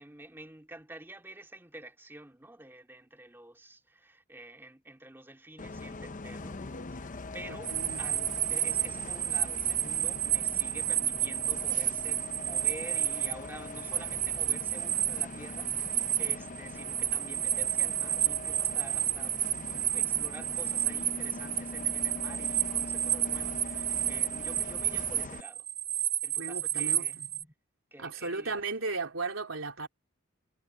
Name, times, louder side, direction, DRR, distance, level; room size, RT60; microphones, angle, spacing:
voice 1, 0.0-6.6 6.9-25.6 26.2-27.5 27.9-28.9, right 1 dB, 10° right, 2.4 m, -49 dB
Bus, 5.6-25.4, left 3 dB, 40° left, 0.8 m, -42 dB
sound 1, 7.6-27.4, right 11 dB, 30° right, 0.5 m, -31 dB
voice 2, 7.7-8.0 26.4-27.3 28.0-29.9, right 3 dB, 80° right, 3.7 m, -35 dB
head